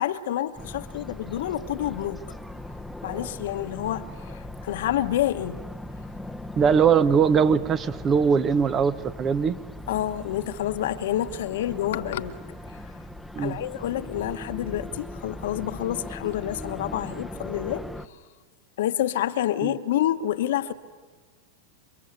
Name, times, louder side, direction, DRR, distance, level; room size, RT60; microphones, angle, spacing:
voice 1, 0.0-2.2 3.0-5.6 9.9-12.4 13.4-17.9 18.8-20.7, left 12 dB, 70° left, 1.2 m, -28 dB
sound 1, 0.6-18.1, left 1 dB, ahead, 1.0 m, -39 dB
voice 2, 6.6-9.6 13.3-13.6 19.6-19.7, right 6 dB, 30° right, 1.1 m, -21 dB
29.0 x 24.0 x 8.2 m
hypercardioid pair, 105°, 0 cm